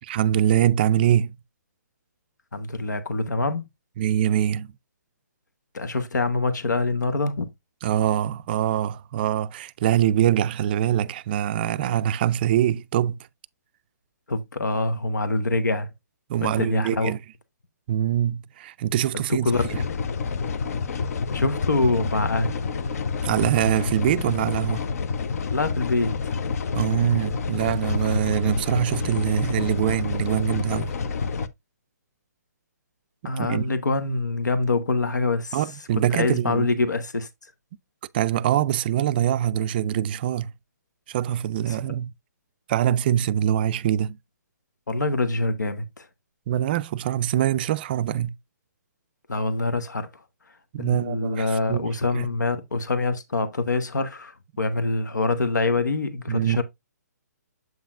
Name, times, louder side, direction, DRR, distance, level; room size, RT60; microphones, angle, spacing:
voice 1, 0.1-1.4 4.0-4.7 7.8-13.2 16.3-17.2 17.9-19.8 23.2-24.9 26.7-31.0 33.4-33.7 35.5-36.7 38.1-40.5 41.1-42.1 42.7-44.2 46.5-48.3 50.7-52.3 56.3-56.6, right 11 dB, 35° right, 0.3 m, -24 dB
voice 2, 2.5-3.7 5.7-7.5 14.3-15.9 16.4-17.1 19.3-19.6 21.3-22.5 25.5-26.3 33.2-35.6 36.1-37.3 41.7-41.8 44.9-46.1 49.3-50.2 50.8-56.6, left 3 dB, 85° left, 1.2 m, -25 dB
sound 1, 19.5-31.5, left 5 dB, 60° left, 0.7 m, -28 dB
7.7 x 5.6 x 2.4 m
hypercardioid pair, 145°, 9 cm